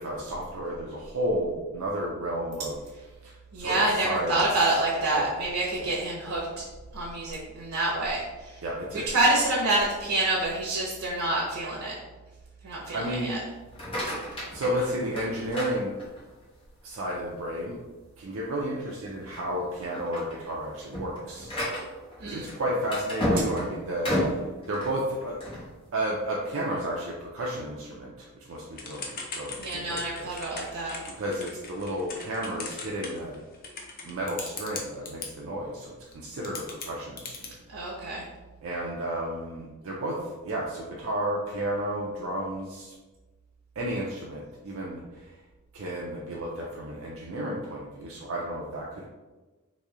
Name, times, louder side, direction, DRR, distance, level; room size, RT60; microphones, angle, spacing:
voice 1, 0.0-2.8 3.2-4.8 5.1-5.3 5.7-5.9 8.6-9.3 12.9-13.4 14.1-14.2 14.5-16.0 16.8-17.8 18.2-21.5 22.2-24.4 24.7-25.4 25.9-30.4 31.1-33.4 34.0-37.5 38.6-42.9 43.8-45.3 45.7-49.1, right 1 dB, 60° right, -3 dB, 0.5 m, -32 dB
voice 2, 3.5-6.6 6.9-8.6 8.9-12.0 12.6-13.4 22.2-22.5 29.6-30.9 37.7-38.3, right 2 dB, 90° right, -4 dB, 0.8 m, -27 dB
sound 1, 13.6-16.4 16.9-17.4 17.8-17.9 18.4-18.5 19.2-19.5 19.8-25.7, equal, 25° left, 0.9 m, -32 dB
Typing / Telephone, 28.8-35.3 36.1-36.2 36.4-37.5, left 4 dB, 40° left, 0.5 m, -39 dB
3.1 x 2.6 x 3.6 m, 1.2 s
head